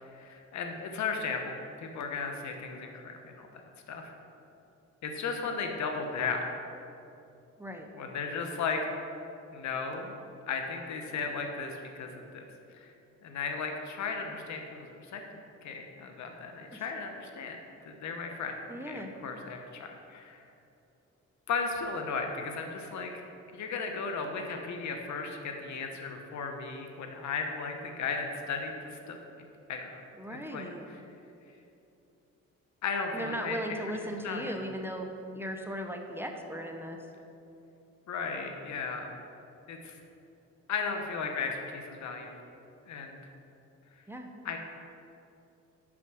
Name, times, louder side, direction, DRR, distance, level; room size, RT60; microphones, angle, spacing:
voice 1, 0.0-3.6 3.9-4.1 5.0-6.5 8.0-8.8 9.5-10.2 10.5-12.5 12.8-12.9 13.2-15.2 15.6-17.6 17.8-18.6 18.9-20.4 21.5-23.2 23.5-29.2 29.7-30.0 30.5-30.7 32.8-33.6 34.2-34.5 38.1-39.1 39.7-40.0 40.7-42.3 42.9-43.2 44.4-44.6, left 5 dB, 65° left, 4 dB, 1.0 m, -35 dB
voice 2, 18.7-19.1 30.1-30.9 33.1-35.1 35.3-37.0 44.1-44.3, equal, 10° right, 3 dB, 0.7 m, -37 dB
6.1 x 6.0 x 6.2 m, 2.8 s
cardioid pair, 90°, 30 cm